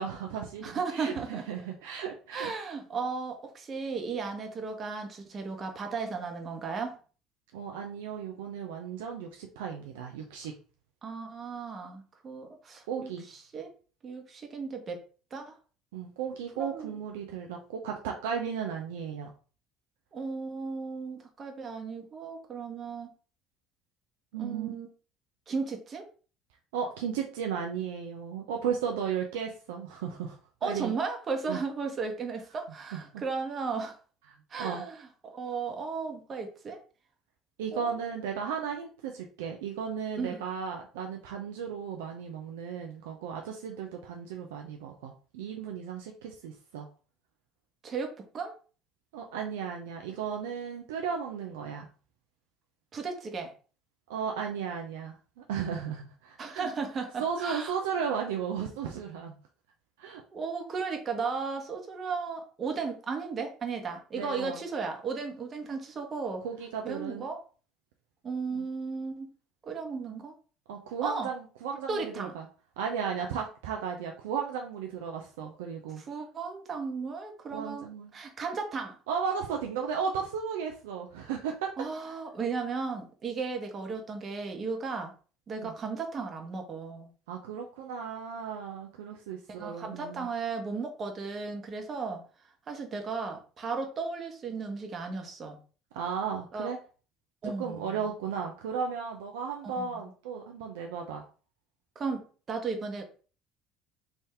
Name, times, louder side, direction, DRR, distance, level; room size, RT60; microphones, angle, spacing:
voice 1, 0.0-2.5 7.5-10.5 12.9-13.2 15.9-19.3 24.3-24.7 26.7-30.9 31.5-31.6 32.9-33.2 34.6-34.8 37.6-46.9 49.1-51.9 54.1-55.2 55.5-56.7 57.2-59.4 60.0-60.2 64.2-64.6 66.4-67.3 68.5-68.6 70.7-72.5 72.8-76.0 77.5-78.1 79.1-81.7 85.6-85.8 87.3-90.3 95.9-96.8 97.6-101.2, right 7 dB, 75° right, 2 dB, 0.4 m, -35 dB
voice 2, 0.6-1.4 2.3-7.0 11.0-13.7 14.0-15.0 15.3-15.5 16.6-16.9 20.1-23.1 24.4-24.9 25.5-26.0 30.6-34.0 34.5-36.8 37.7-38.0 40.2-40.4 47.8-48.5 52.9-53.5 56.4-57.8 60.3-66.4 66.8-67.4 68.2-69.3 69.7-70.3 71.0-71.3 71.9-72.3 76.1-77.9 78.1-79.0 81.8-85.1 85.5-87.1 89.6-92.2 92.7-95.6 96.5-96.7 97.4-98.1 99.6-100.1 101.9-103.0, right 4 dB, 40° right, 4 dB, 1.0 m, -35 dB
3.5 x 2.6 x 3.3 m, 0.38 s
hypercardioid pair, 60°, 0 cm